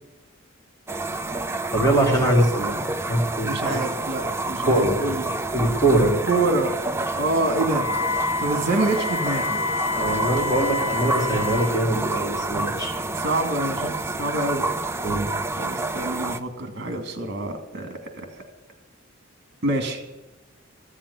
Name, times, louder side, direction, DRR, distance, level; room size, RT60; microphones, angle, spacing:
sound 1, 0.9-16.4, right 2 dB, 15° right, 0.6 m, -29 dB
voice 1, 1.7-2.7 3.1-3.8 4.6-5.0 5.5-6.1 10.0-12.9 15.0-15.3, right 1 dB, 20° left, 0 dB, 2.6 m, -22 dB
voice 2, 3.4-5.4 6.3-6.8 7.2-7.9 8.4-9.6 13.1-14.7 15.6-18.4 19.6-20.0, right 2 dB, 55° right, 4 dB, 2.3 m, -26 dB
Wind instrument woodwind instrument, 7.7-11.8, left 4 dB, 90° left, 1.8 m, -28 dB
14.5 x 7.4 x 9.9 m, 1.0 s
head